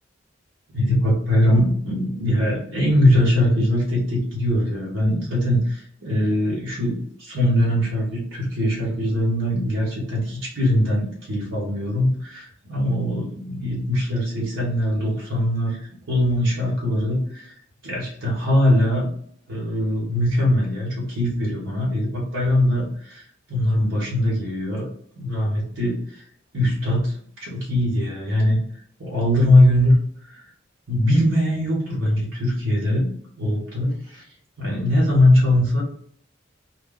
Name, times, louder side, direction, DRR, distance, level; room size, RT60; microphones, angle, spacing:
voice 1, 0.7-15.8 16.1-17.5 17.8-19.1 19.5-23.2 23.5-24.9 25.2-26.0 26.5-27.1 27.4-28.6 29.0-29.9 30.9-34.2 34.6-35.8, left 1 dB, 85° right, -5 dB, 1.2 m, -21 dB
2.3 x 2.2 x 3.8 m, 0.63 s
head